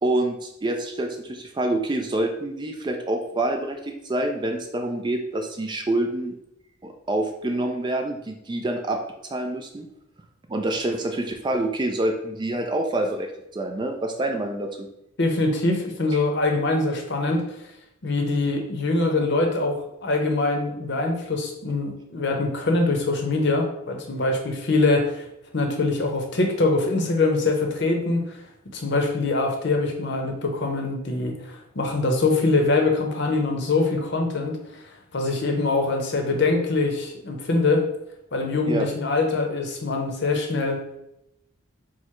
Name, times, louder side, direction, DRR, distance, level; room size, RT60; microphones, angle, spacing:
voice 1, 0.0-6.3 6.8-9.9 10.5-14.9 38.7-38.9, right 1 dB, 20° right, 4 dB, 0.3 m, -27 dB
voice 2, 15.2-17.4 18.0-25.2 25.5-28.4 28.7-34.8 35.1-37.8 38.3-40.8, left 3 dB, 55° left, 3 dB, 0.7 m, -23 dB
4.5 x 2.1 x 4.4 m, 0.83 s
head